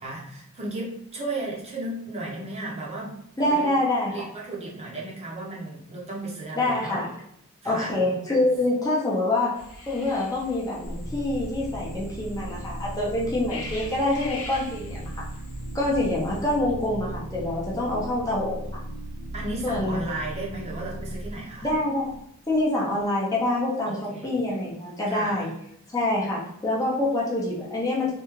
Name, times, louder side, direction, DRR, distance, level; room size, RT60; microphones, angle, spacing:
voice 1, 0.0-3.2 3.5-3.7 4.1-7.0 7.6-7.9 19.3-21.7 23.8-24.4 25.1-25.5, right 2 dB, 30° right, -3 dB, 0.7 m, -34 dB
voice 2, 3.4-4.3 6.5-7.1 7.6-15.3 15.7-18.8 19.6-20.0 21.6-22.1 22.5-25.5 25.9-28.1, left 1 dB, 15° left, -5 dB, 0.6 m, -26 dB
sound 1, 9.6-16.6, left 2 dB, 75° left, 0.9 m, -42 dB
sound 2, 10.8-22.6, right 1 dB, 40° left, 1.0 m, -37 dB
3.4 x 2.3 x 3.1 m, 0.75 s
head